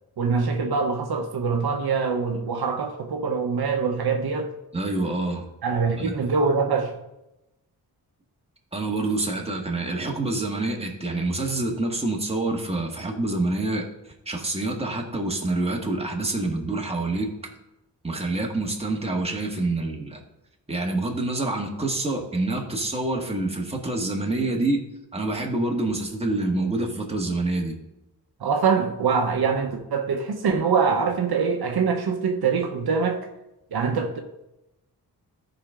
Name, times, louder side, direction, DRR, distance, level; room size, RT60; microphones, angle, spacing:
voice 1, 0.2-4.5 5.6-7.0 28.4-33.3 33.7-34.2, right 5 dB, 70° right, 4 dB, 1.0 m, -24 dB
voice 2, 4.7-5.5 6.0-6.2 8.7-13.8 14.2-17.3 18.0-20.2 20.7-24.8 25.1-27.8, right 2 dB, 15° right, 0 dB, 1.6 m, -27 dB
13.5 x 5.2 x 3.7 m, 0.90 s
wide cardioid pair, 95°, 39 cm